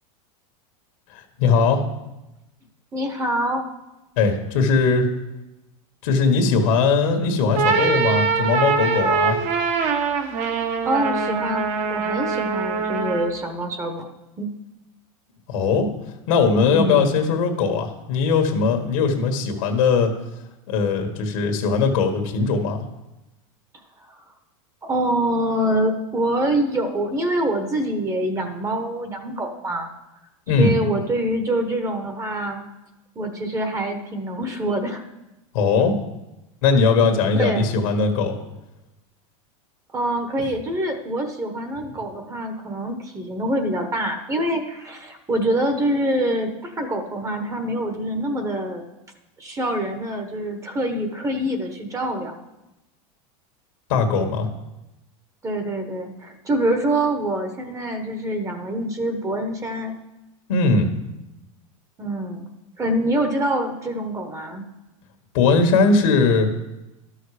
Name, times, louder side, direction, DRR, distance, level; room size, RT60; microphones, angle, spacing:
voice 1, 1.1-1.8 4.2-5.1 6.0-9.4 15.5-15.9 16.3-20.1 20.7-22.8 30.5-30.7 35.5-36.0 36.6-38.4 53.9-54.5 60.5-60.9 65.3-66.5, left 4 dB, 70° left, 4 dB, 1.6 m, -19 dB
voice 2, 2.9-3.7 10.8-14.1 14.4-14.5 16.7-17.0 24.0-24.2 24.8-29.9 30.6-32.6 33.2-35.0 37.3-37.7 39.9-48.8 49.4-52.4 55.4-60.0 62.0-62.5 62.8-64.6, right 1 dB, 15° right, 6 dB, 1.1 m, -25 dB
sound 1, 7.4-13.4, right 5 dB, 40° right, 1.2 m, -23 dB
12.0 x 6.4 x 5.0 m, 0.98 s
supercardioid pair, 135°, 18 cm